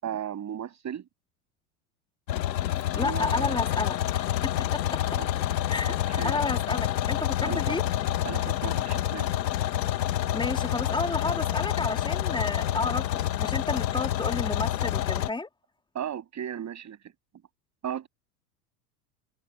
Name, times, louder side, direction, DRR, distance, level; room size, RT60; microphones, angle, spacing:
voice 1, 0.0-1.1 2.9-3.6 5.2-5.3 6.1-6.4 7.4-7.8 8.2-9.3 15.9-17.0 17.8-18.1, right 9 dB, 35° right, 7.3 m, -35 dB
sound 1, 2.3-15.3, left 12 dB, 85° left, 1.6 m, -28 dB
voice 2, 2.9-4.2 4.9-5.0 5.7-5.9 6.2-7.8 10.3-15.5, left 3 dB, 10° left, 2.4 m, -31 dB
hypercardioid pair, 90°, 49 cm